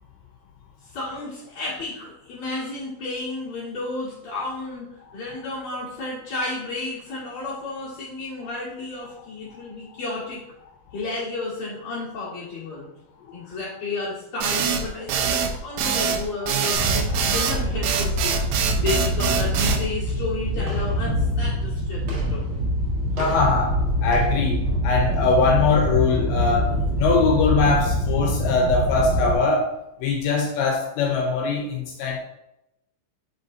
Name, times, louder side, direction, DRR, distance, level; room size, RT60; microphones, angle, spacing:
voice 1, 0.8-10.4 10.9-12.9 13.3-18.4 18.8-22.4, left 3 dB, 65° left, -8 dB, 1.7 m, -32 dB
sound 1, 14.4-19.8, right 7 dB, 85° right, 3.0 m, -24 dB
sound 2, 16.7-29.3, equal, 65° right, 2.7 m, -24 dB
voice 2, 23.2-29.7 30.0-32.2, left 4 dB, 85° left, 1 dB, 2.7 m, -22 dB
7.0 x 5.2 x 2.6 m, 0.87 s
omnidirectional pair, 5.5 m